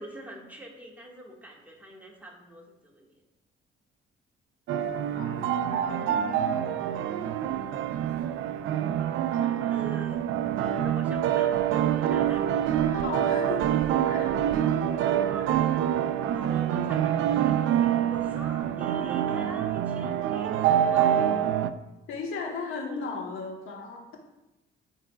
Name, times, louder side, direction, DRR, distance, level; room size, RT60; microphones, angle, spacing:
voice 1, 0.0-3.2 9.7-10.5 10.8-12.9 15.0-15.6 16.3-21.3 22.4-23.2, right 1 dB, 10° right, -2 dB, 1.9 m, -44 dB
sound 1, 4.7-21.7, right 10 dB, 75° right, 0.4 m, -26 dB
voice 2, 5.2-7.1 9.4-9.7 12.8-13.6 14.1-14.4 22.1-24.2, left 4 dB, 90° left, 0 dB, 1.5 m, -37 dB
10.5 x 4.6 x 2.5 m, 0.96 s
cardioid pair, 90°, 20 cm